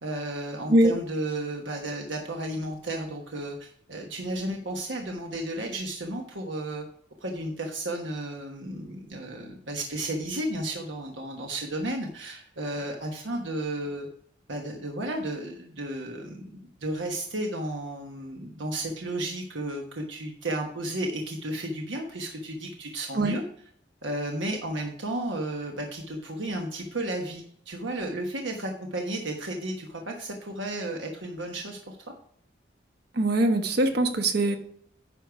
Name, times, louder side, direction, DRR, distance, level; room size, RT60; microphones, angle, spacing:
voice 1, 0.0-6.8 7.2-14.1 14.5-16.4 16.8-23.4 24.0-32.0, right 1 dB, 85° right, 2 dB, 1.2 m, -33 dB
voice 2, 33.1-34.6, right 1 dB, 60° right, 7 dB, 1.2 m, -22 dB
10.0 x 5.4 x 4.7 m, 0.64 s
head